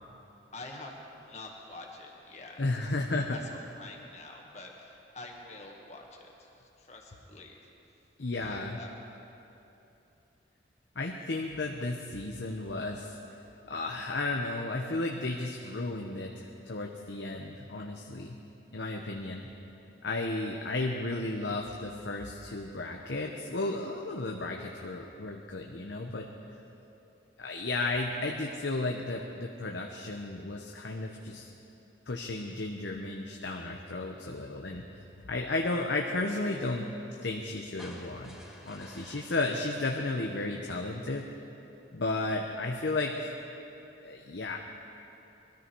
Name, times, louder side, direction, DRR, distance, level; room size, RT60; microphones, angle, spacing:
voice 1, 0.5-2.8 3.3-7.7 8.3-8.9, left 2 dB, 35° left, 0 dB, 1.8 m, -47 dB
voice 2, 2.6-3.4 8.2-8.8 11.0-13.2 13.7-18.4 18.7-19.5 20.0-26.3 27.4-31.5 32.1-36.9 37.2-38.4 38.6-41.2 41.9-43.3 44.0-44.6, left 2 dB, 75° left, 1 dB, 0.9 m, -33 dB
sound 1, 37.8-41.0, equal, 5° right, 2.5 m, -52 dB
21.5 x 13.5 x 4.6 m, 2.9 s
head